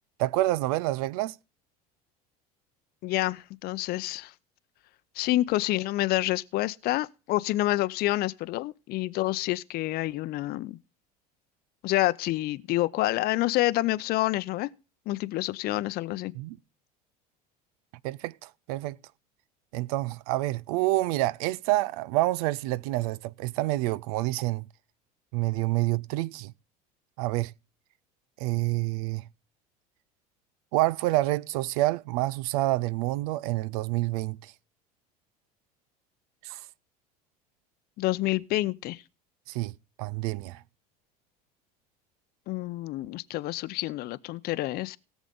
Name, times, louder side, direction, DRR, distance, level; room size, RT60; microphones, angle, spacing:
voice 1, 0.2-1.4 16.3-16.6 18.0-19.0 19.7-24.7 25.3-26.5 27.2-27.5 28.4-29.3 30.7-34.5 36.4-36.6 39.5-39.7 40.0-40.6, right 18 dB, 70° right, 0.5 m, -28 dB
voice 2, 3.0-4.3 5.2-10.8 11.8-14.7 15.1-16.3 38.0-39.0 42.5-45.0, left 17 dB, 50° left, 0.6 m, -28 dB
17.5 x 7.1 x 3.9 m
hypercardioid pair, 75°, 20 cm